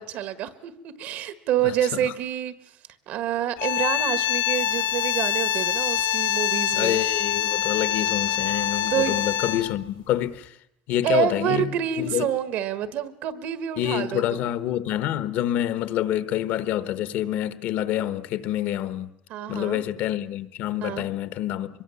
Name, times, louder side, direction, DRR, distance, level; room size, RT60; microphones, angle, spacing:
voice 1, 0.0-2.5 3.1-7.0 8.9-9.2 11.0-14.4 19.3-19.8 20.8-21.1, right 10 dB, 60° right, 1.4 m, -27 dB
sound 1, 3.6-9.8, left 11 dB, 80° left, 1.4 m, -25 dB
voice 2, 6.7-10.5 10.9-11.7 12.0-12.3 13.8-19.1 19.5-21.7, left 12 dB, 65° left, 1.2 m, -27 dB
24.5 x 22.0 x 7.0 m
cardioid pair, 170°, 3 cm